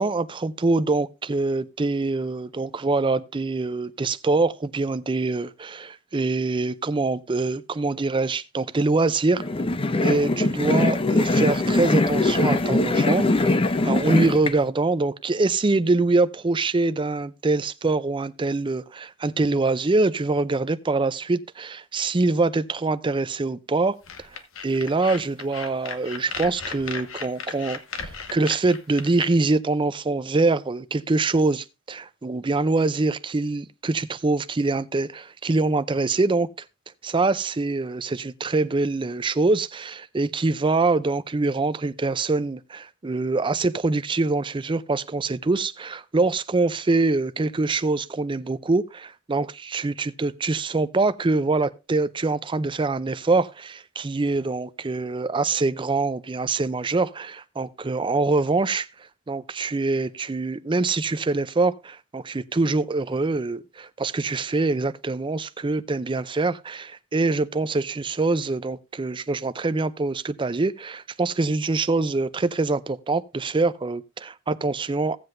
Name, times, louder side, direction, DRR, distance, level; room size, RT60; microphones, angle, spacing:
voice 1, 0.0-9.4 10.0-24.0 24.6-36.5 37.0-58.9 59.3-75.2, right 3 dB, 25° right, 0.5 m, -24 dB
sound 1, 9.4-14.5, left 2 dB, 25° left, 0.6 m, -22 dB
sound 2, 24.0-29.3, left 5 dB, 85° left, 1.2 m, -35 dB
16.5 x 7.7 x 2.6 m
head